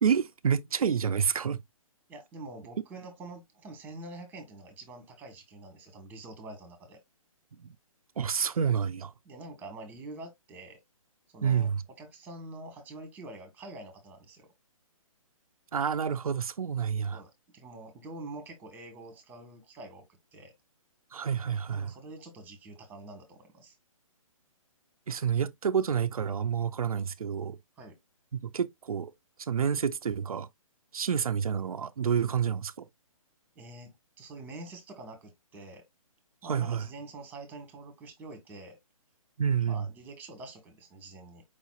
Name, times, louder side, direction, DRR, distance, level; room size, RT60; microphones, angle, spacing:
voice 1, 0.0-1.6 7.6-7.7 8.2-9.1 11.4-11.8 15.7-17.2 21.1-21.9 25.1-27.6 28.3-29.1 29.4-30.5 30.9-32.8 36.4-36.9 39.4-39.9, right 7 dB, 85° right, 0.5 m, -29 dB
voice 2, 2.1-7.0 9.2-10.8 11.3-14.5 17.1-20.0 20.3-20.5 21.7-23.8 25.3-25.4 27.8-28.0 33.5-35.8 36.4-38.8 39.7-41.4, right 2 dB, 10° right, 1.4 m, -46 dB
5.0 x 4.1 x 2.4 m
hypercardioid pair, 145°, 18 cm